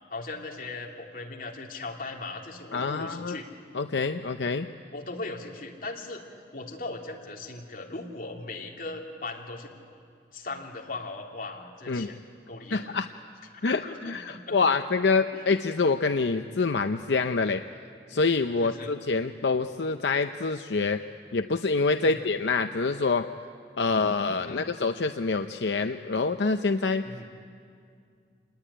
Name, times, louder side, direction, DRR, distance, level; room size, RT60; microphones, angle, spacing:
voice 1, 0.1-3.5 4.9-9.7 10.3-12.2 12.5-12.8 13.6-14.6 15.3-15.4 18.6-18.9 22.0-22.2 24.4-24.6 27.0-27.3, left 3 dB, 50° left, 0 dB, 2.9 m, -38 dB
voice 2, 2.7-3.4 3.7-4.7 11.9-12.1 12.7-13.1 13.6-17.6 18.1-21.0 21.3-23.3 23.8-27.0, left 4 dB, 80° left, 7 dB, 0.6 m, -26 dB
27.0 x 19.5 x 10.0 m, 2.3 s
head